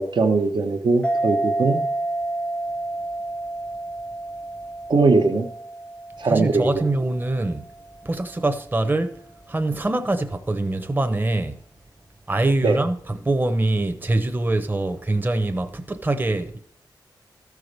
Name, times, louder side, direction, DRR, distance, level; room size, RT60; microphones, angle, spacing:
voice 1, 0.0-1.8 4.9-5.5 6.2-6.8 12.6-12.8, right 3 dB, 75° right, 1.0 m, -20 dB
sound 1, 1.0-8.1, right 2 dB, 15° left, 0.6 m, -29 dB
voice 2, 6.2-7.6 8.0-9.2 9.5-11.6 12.3-12.9 13.2-16.6, right 2 dB, 25° right, 0.8 m, -24 dB
13.5 x 4.7 x 6.6 m
wide cardioid pair, 80°, 8 cm